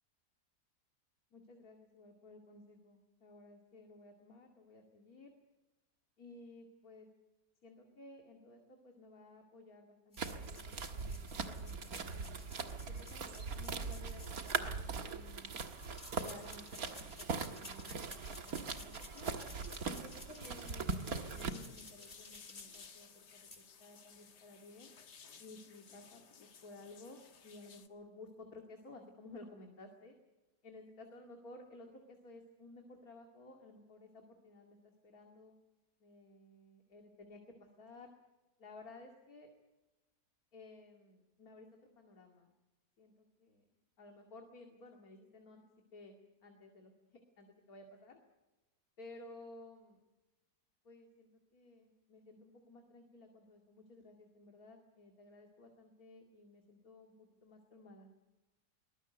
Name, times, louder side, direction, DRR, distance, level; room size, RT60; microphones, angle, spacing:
voice 1, 1.3-5.3 6.2-7.1 7.6-12.4 12.9-15.5 16.2-19.3 19.8-24.9 25.4-30.1 30.6-35.5 36.0-38.1 38.6-39.5 40.5-41.7 42.0-42.5 43.0-43.6 44.0-45.6 45.9-48.2 49.0-50.0 50.8-57.1 57.4-58.1, left 2 dB, 60° left, 2 dB, 2.8 m, -56 dB
sound 1, 10.1-15.0 15.7-23.2 23.5-23.6, left 2 dB, 30° left, 3.3 m, -55 dB
sound 2, 10.2-21.5, right 4 dB, 60° right, 2.0 m, -41 dB
sound 3, 19.4-27.9, left 6 dB, 90° left, 2.2 m, -58 dB
23.5 x 19.5 x 8.0 m, 1.1 s
omnidirectional pair, 1.7 m